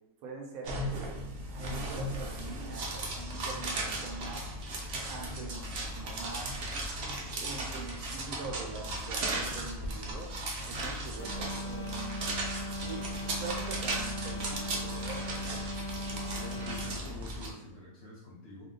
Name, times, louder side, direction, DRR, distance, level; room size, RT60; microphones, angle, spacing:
voice 1, 0.2-1.2 1.5-4.5 5.1-6.6 7.3-10.3 10.7-12.2 12.8-15.6, right 4 dB, 75° right, 0 dB, 1.0 m, -44 dB
sound 1, 0.6-17.5, right 1 dB, 60° right, 0.7 m, -36 dB
sound 2, 11.2-17.1, left 1 dB, 90° left, 1.1 m, -39 dB
voice 2, 16.1-18.7, left 2 dB, 60° left, -4 dB, 0.7 m, -47 dB
2.5 x 2.2 x 3.7 m, 0.96 s
omnidirectional pair, 1.5 m